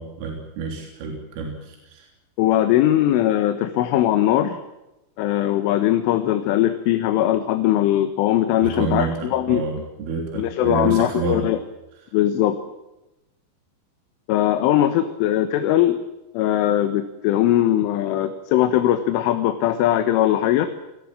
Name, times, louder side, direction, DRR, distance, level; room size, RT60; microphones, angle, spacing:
voice 1, 0.0-2.1 8.6-11.5, right 5 dB, 85° right, 2 dB, 6.0 m, -29 dB
voice 2, 2.4-4.6 5.2-9.6 10.3-11.6 12.1-12.6 14.3-16.0 16.3-20.7, left 12 dB, 80° left, 9 dB, 3.8 m, -20 dB
28.5 x 20.0 x 7.5 m, 0.95 s
omnidirectional pair, 5.7 m